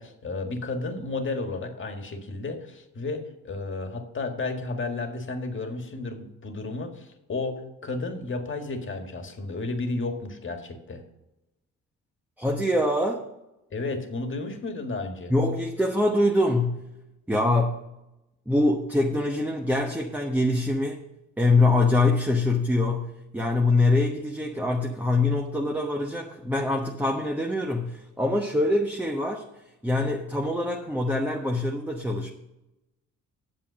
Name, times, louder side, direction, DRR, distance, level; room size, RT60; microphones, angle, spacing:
voice 1, 0.0-11.0 13.7-15.3, left 3 dB, 40° left, 5 dB, 1.8 m, -32 dB
voice 2, 12.4-13.2 15.3-16.8 17.3-17.8 18.5-21.0 21.4-29.5 29.8-32.3, left 2 dB, 5° right, 1 dB, 1.0 m, -24 dB
8.4 x 7.2 x 6.2 m, 0.94 s
cardioid pair, 90°, 30 cm